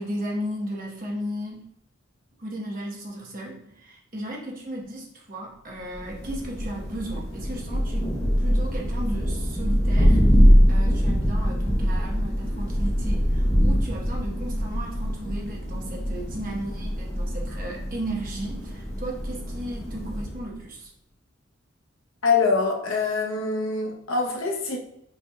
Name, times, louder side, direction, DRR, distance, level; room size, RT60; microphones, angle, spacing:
voice 1, 0.0-1.7 2.4-8.1 8.4-20.9, right 1 dB, 45° right, 1.0 m, -35 dB
Thunder, 5.9-20.5, equal, 15° left, 1.1 m, -23 dB
voice 2, 22.2-24.8, left 4 dB, 80° left, 0.9 m, -24 dB
5.5 x 3.3 x 2.2 m
head